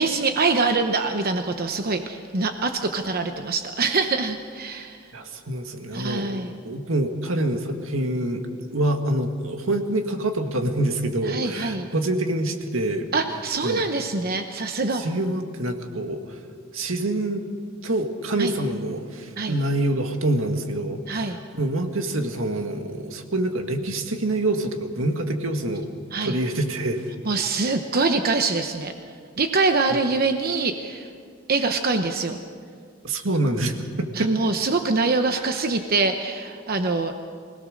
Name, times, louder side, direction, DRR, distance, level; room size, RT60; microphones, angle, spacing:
voice 1, 0.0-5.0 5.9-6.5 11.3-11.9 13.1-15.0 18.4-18.5 19.4-19.6 21.1-21.4 26.1-26.4 27.3-28.9 29.4-31.1 31.5-32.4 34.1-37.1, right 3 dB, 50° right, 6 dB, 0.9 m, -24 dB
voice 2, 5.1-8.4 8.7-13.1 13.6-13.8 15.0-16.4 16.7-17.5 17.8-25.9 26.2-27.1 33.0-34.3 35.4-35.5, right 1 dB, 85° right, 5 dB, 1.9 m, -26 dB
24.5 x 17.5 x 6.5 m, 2.1 s
head